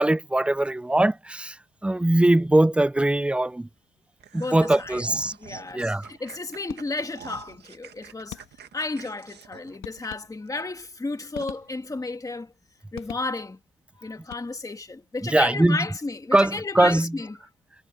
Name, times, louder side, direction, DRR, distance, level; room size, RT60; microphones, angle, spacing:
voice 1, 0.0-3.7 4.3-6.1 15.2-15.8 16.3-17.2, right 1 dB, 5° right, 0.3 m, -21 dB
sound 1, 4.2-10.5 10.9-11.0 11.4-11.5, right 9 dB, 60° right, 1.7 m, -46 dB
voice 2, 4.3-5.0 5.4-8.4 8.7-12.5 12.9-13.6 14.0-17.3, left 3 dB, 15° left, 1.9 m, -33 dB
sound 2, 6.7-7.2 8.3-8.9 9.8-10.7 11.3-12.1 12.9-13.7 14.2-14.9, left 13 dB, 85° left, 1.4 m, -44 dB
cardioid pair, 90°, 20 cm